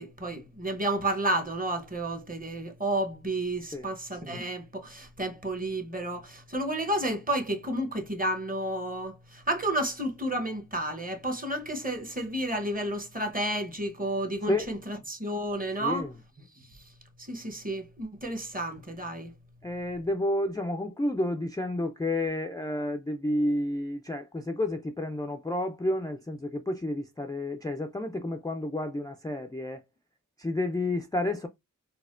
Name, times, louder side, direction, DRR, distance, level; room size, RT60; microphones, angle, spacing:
voice 1, 0.0-16.0 17.2-19.3, right 1 dB, 25° right, 0.9 m, -31 dB
voice 2, 15.8-16.1 19.6-29.8 30.4-31.5, left 1 dB, 10° left, 0.3 m, -30 dB
4.1 x 2.1 x 2.5 m
wide cardioid pair, 45°, 34 cm